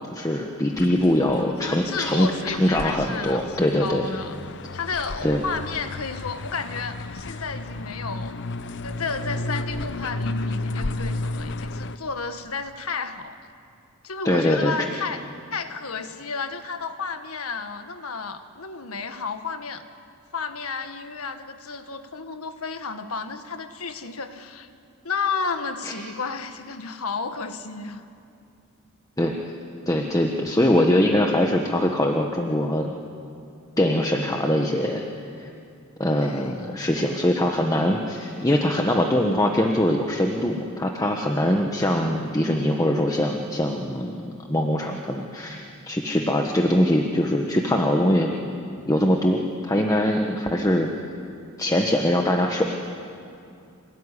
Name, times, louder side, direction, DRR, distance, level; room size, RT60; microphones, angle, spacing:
voice 1, 0.1-4.1 5.2-5.4 14.2-14.7 25.8-25.9 29.2-29.4 29.9-32.9 33.8-35.0 35.4-35.5 36.0-48.3 48.9-50.9 51.6-52.6, left 1 dB, 15° left, 2 dB, 1.3 m, -22 dB
sound 1, 0.7-12.0, left 2 dB, 55° left, 0.8 m, -33 dB
voice 2, 1.4-4.4 4.7-8.4 8.8-13.4 14.0-15.2 15.5-19.8 20.3-24.7 25.0-28.1 36.1-36.5, left 4 dB, 80° left, 8 dB, 1.6 m, -32 dB
27.0 x 18.5 x 10.0 m, 2.5 s
head